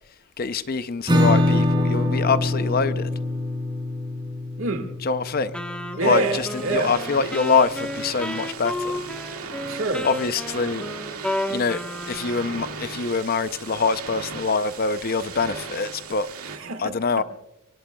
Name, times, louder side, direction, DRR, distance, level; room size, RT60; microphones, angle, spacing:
voice 1, 0.4-3.1 5.0-5.5 6.0-8.9 10.0-10.8 11.5-16.3 16.8-17.2, left 5 dB, 40° left, 0.5 m, -24 dB
Acoustic guitar / Strum, 1.1-6.5, left 1 dB, 20° right, 4.2 m, -24 dB
voice 2, 4.6-4.9 5.9-7.0 9.7-10.1 16.4-17.2, right 2 dB, 65° right, 1.8 m, -27 dB
Wind instrument woodwind instrument, 5.5-12.7, equal, 5° left, 1.2 m, -32 dB
sound 1, 6.0-16.6, right 5 dB, 80° right, 2.1 m, -37 dB
24.5 x 24.0 x 2.3 m
head